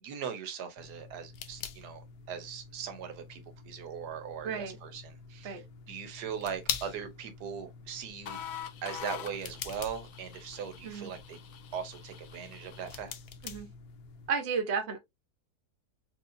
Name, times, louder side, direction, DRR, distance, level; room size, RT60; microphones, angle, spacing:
voice 1, 0.0-8.4 8.8-11.4 11.7-13.1, right 7 dB, 90° right, 1.4 m, -40 dB
sound 1, 0.8-14.3, left 7 dB, 90° left, 1.2 m, -45 dB
voice 2, 4.4-4.8 5.4-5.6 10.8-11.1 13.4-13.7 14.3-15.0, right 5 dB, 50° right, 1.0 m, -32 dB
sound 2, 8.3-13.1, left 9 dB, 65° left, 0.9 m, -45 dB
4.6 x 2.4 x 2.5 m
omnidirectional pair, 1.7 m